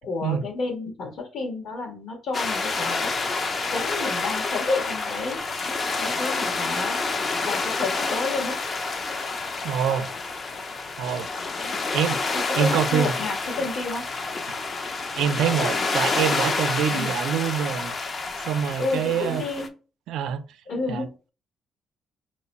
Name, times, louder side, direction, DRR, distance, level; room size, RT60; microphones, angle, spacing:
voice 1, 0.0-3.2 3.4-5.4 6.0-7.1 7.4-8.6 11.6-11.9 12.3-14.0 16.9-17.1 18.8-19.8 20.7-21.3, left 3 dB, 65° left, 1.3 m, -30 dB
sound 1, 2.3-19.7, left 3 dB, 40° left, 0.5 m, -28 dB
voice 2, 9.6-10.1 11.0-11.3 11.9-12.2 12.5-13.1 15.2-17.9 18.4-19.4 20.1-20.4 20.9-21.1, right 9 dB, 85° right, 0.4 m, -25 dB
3.0 x 2.2 x 4.0 m
cardioid pair, 90°, 0 cm